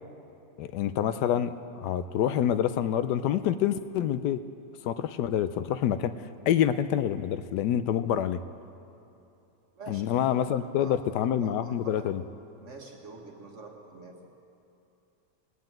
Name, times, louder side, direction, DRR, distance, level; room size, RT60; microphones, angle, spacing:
voice 1, 0.6-4.4 4.8-6.1 6.5-8.4 9.9-12.2, left 10 dB, 80° left, 12 dB, 1.1 m, -27 dB
voice 2, 10.6-12.1 12.6-14.3, right 3 dB, 45° right, 2 dB, 1.7 m, -47 dB
18.5 x 7.8 x 8.9 m, 2.9 s
omnidirectional pair, 1.8 m